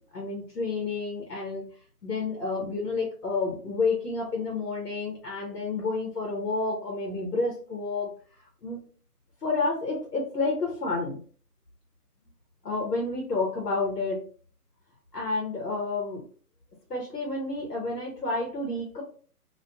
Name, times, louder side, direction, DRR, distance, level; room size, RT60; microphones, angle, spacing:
voice 1, 0.1-1.7 2.0-8.1 8.6-8.8 9.4-11.2 12.6-14.2 15.1-16.2 16.9-19.0, left 3 dB, 85° left, 0 dB, 1.0 m, -30 dB
2.4 x 2.2 x 2.8 m, 0.42 s
figure-of-eight pair, 135°, 47 cm